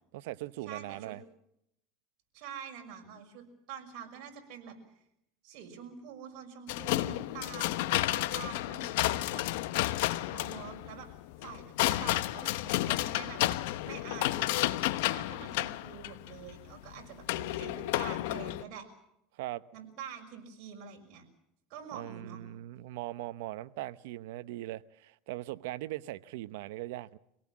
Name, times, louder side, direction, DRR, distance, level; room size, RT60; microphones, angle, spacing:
voice 1, 0.1-1.2 19.4-19.6 21.9-27.2, right 16 dB, 80° right, 0.9 m, -40 dB
voice 2, 0.7-1.1 2.3-4.8 5.4-9.5 10.3-11.1 11.4-13.4 13.8-14.7 15.1-18.8 19.7-21.2 21.7-22.4, right 7 dB, 60° right, 6.0 m, -46 dB
sound 1, 6.7-18.6, left 16 dB, 75° left, 1.0 m, -31 dB
26.0 x 18.0 x 7.4 m
supercardioid pair, 115°, 0 cm